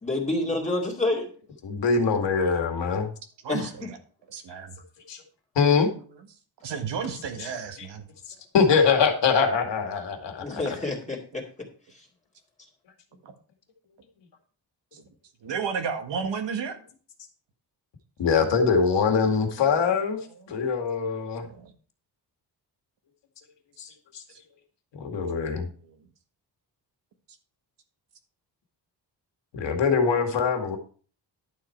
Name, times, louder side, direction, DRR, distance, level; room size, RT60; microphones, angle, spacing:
voice 1, 0.0-1.3 3.5-3.7 10.4-11.4, left 2 dB, 15° left, -3 dB, 2.3 m, -28 dB
voice 2, 1.6-3.1 5.1-5.2 5.6-5.9 7.4-7.5 7.8-7.9 8.5-10.8 18.2-20.2 20.5-21.5 23.8-24.2 24.9-25.7 29.5-30.8, left 5 dB, 85° left, 4 dB, 2.2 m, -23 dB
voice 3, 3.4-4.0 4.3-4.8 6.6-8.0 10.8-11.2 13.2-13.3 14.9-15.0 15.4-16.8 20.4-20.7 21.2-21.7 24.3-24.4, right 6 dB, 85° right, 4 dB, 1.7 m, -33 dB
11.5 x 7.6 x 4.5 m, 0.41 s
wide cardioid pair, 145°, 42 cm